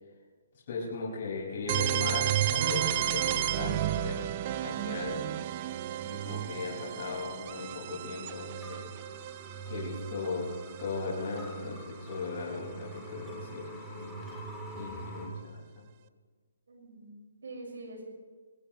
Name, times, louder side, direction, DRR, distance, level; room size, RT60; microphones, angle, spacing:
voice 1, 0.7-4.3 4.6-5.4 6.0-8.9 9.7-10.5 10.8-14.4 14.7-15.9, left 4 dB, 35° left, -6 dB, 5.4 m, -38 dB
sound 1, 1.7-11.4, right 12 dB, 25° right, 0.5 m, -32 dB
sound 2, 7.2-15.3, right 3 dB, ahead, 2.0 m, -44 dB
voice 2, 16.7-17.2 17.4-18.0, right 2 dB, 70° right, 0 dB, 5.4 m, -45 dB
22.0 x 20.0 x 3.1 m, 1.5 s
hypercardioid pair, 175°, 0 cm